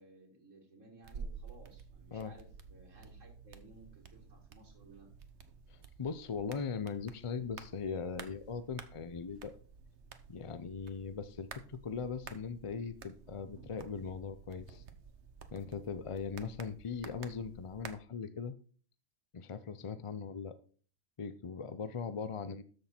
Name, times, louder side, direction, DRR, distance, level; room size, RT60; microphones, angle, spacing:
voice 1, 0.0-5.1, right 2 dB, 80° right, -2 dB, 2.1 m, -58 dB
sound 1, 1.0-17.9, right 5 dB, 65° right, 1.3 m, -52 dB
voice 2, 5.7-9.6 10.3-14.8 15.5-18.5 19.3-20.6 21.2-22.6, left 5 dB, 45° left, 13 dB, 0.4 m, -40 dB
13.0 x 6.4 x 4.3 m, 0.43 s
omnidirectional pair, 1.3 m